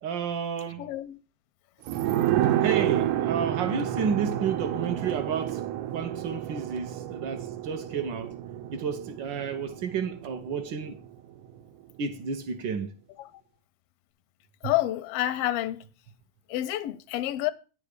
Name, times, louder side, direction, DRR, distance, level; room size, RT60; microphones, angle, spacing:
voice 1, 0.0-0.8 2.6-5.6 5.9-8.4 8.7-11.0 12.0-12.9, right 6 dB, 70° right, 1.1 m, -31 dB
voice 2, 0.8-1.2 13.2-13.3 14.6-15.8 16.5-17.5, left 14 dB, 75° left, 1.4 m, -28 dB
sound 1, 1.9-11.1 11.4-11.5, right 12 dB, 90° right, 2.1 m, -29 dB
10.5 x 4.9 x 6.5 m
omnidirectional pair, 3.4 m